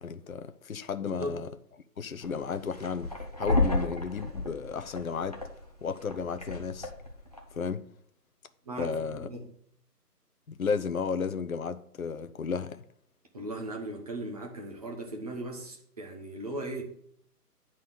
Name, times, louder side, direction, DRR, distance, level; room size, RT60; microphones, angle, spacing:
voice 1, 0.0-1.5 2.0-3.1 3.4-5.4 5.8-6.9 7.5-7.9 8.8-9.3 10.5-12.8, left 5 dB, 60° left, 0.7 m, -33 dB
sound 1, 2.2-7.6, left 2 dB, 25° left, 0.7 m, -32 dB
voice 2, 8.6-9.5 13.3-16.8, right 1 dB, 25° right, 1.1 m, -38 dB
9.2 x 4.0 x 6.6 m
figure-of-eight pair, 155°, 49 cm